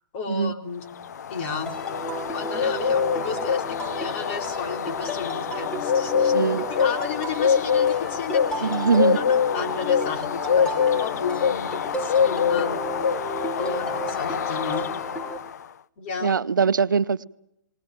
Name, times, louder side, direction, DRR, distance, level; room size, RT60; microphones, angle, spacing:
voice 1, 0.1-0.9 1.3-1.8 2.3-8.7 9.1-12.8 13.6-15.0 16.0-16.4, left 5 dB, 40° left, 4.0 m, -33 dB
sound 1, 0.9-15.6, left 7 dB, 60° left, 0.8 m, -25 dB
sound 2, 1.7-15.4, right 1 dB, 10° left, 2.2 m, -33 dB
voice 2, 6.3-6.6 8.6-9.2 16.2-17.2, right 5 dB, 80° right, 0.8 m, -22 dB
20.5 x 19.5 x 8.9 m
hypercardioid pair, 140°, 10 cm